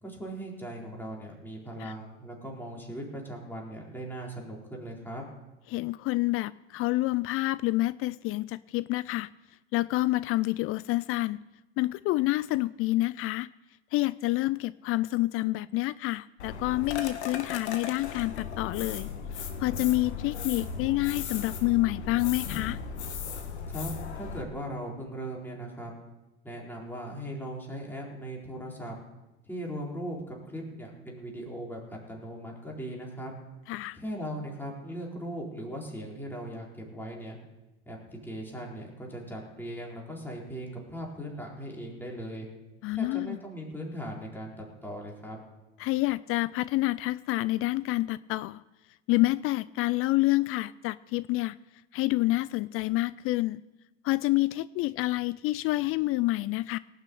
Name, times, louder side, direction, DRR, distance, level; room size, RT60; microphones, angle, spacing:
voice 1, 0.0-5.2 23.7-25.9 26.4-28.9 29.4-33.3 33.9-37.4 37.9-38.0 38.2-42.5 42.9-45.4, equal, 5° left, -2 dB, 4.1 m, -39 dB
voice 2, 5.7-9.3 9.7-11.4 11.8-13.5 13.9-19.1 19.6-22.8 33.7-34.0 42.8-43.4 45.8-48.6 49.1-51.6 51.9-53.6 54.0-56.8, left 19 dB, 45° left, 19 dB, 0.4 m, -28 dB
sound 1, 16.4-24.4, left 6 dB, 80° left, 1.8 m, -36 dB
17.5 x 6.7 x 8.6 m, 1.0 s
hypercardioid pair, 80°, 33 cm